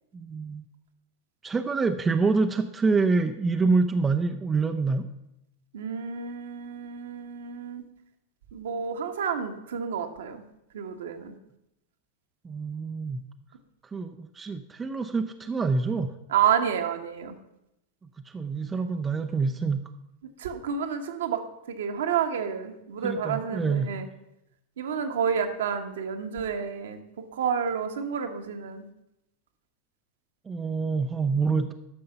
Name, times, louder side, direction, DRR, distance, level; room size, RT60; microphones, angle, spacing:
voice 1, 0.1-0.6 1.4-5.1 12.4-13.2 13.9-16.1 18.3-19.8 23.0-23.9 30.5-31.7, right 4 dB, 15° right, 7 dB, 0.6 m, -26 dB
voice 2, 5.7-7.8 8.5-10.4 10.7-11.3 16.3-17.4 20.4-21.4 21.7-24.1 24.8-27.0 27.3-28.9, right 7 dB, 60° right, 6 dB, 1.2 m, -29 dB
11.5 x 6.6 x 5.6 m, 0.85 s
figure-of-eight pair, 90°, 0 cm